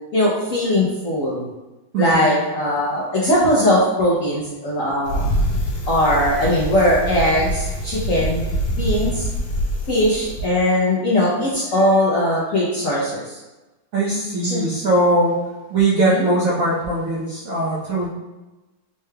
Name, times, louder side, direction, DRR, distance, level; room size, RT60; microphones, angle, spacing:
voice 1, 0.1-1.5 2.0-5.2 5.9-8.4 8.7-9.3 9.9-13.4 14.4-14.7 16.0-16.3, left 1 dB, 70° left, -7 dB, 0.7 m, -20 dB
voice 2, 1.9-2.4 13.9-15.4 15.7-18.1, right 2 dB, 85° right, -6 dB, 0.7 m, -20 dB
Bicycle, 5.0-10.5, equal, 90° left, 1.6 m, -25 dB
4.3 x 3.2 x 2.2 m, 1.1 s
omnidirectional pair, 2.2 m